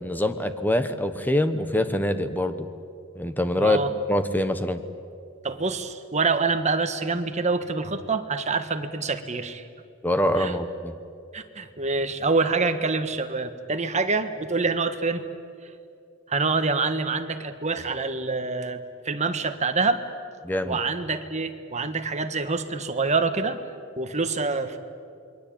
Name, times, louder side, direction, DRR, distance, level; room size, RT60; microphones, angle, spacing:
voice 1, 0.0-2.7 3.1-3.8 4.1-4.8 10.0-10.9 20.4-20.8, left 1 dB, 10° left, 9 dB, 1.3 m, -24 dB
voice 2, 3.6-3.9 5.4-9.7 10.3-10.5 11.3-15.2 16.3-20.0 20.6-23.6 24.0-24.8, right 4 dB, 35° right, 8 dB, 1.5 m, -26 dB
27.5 x 22.5 x 8.8 m, 2.5 s
head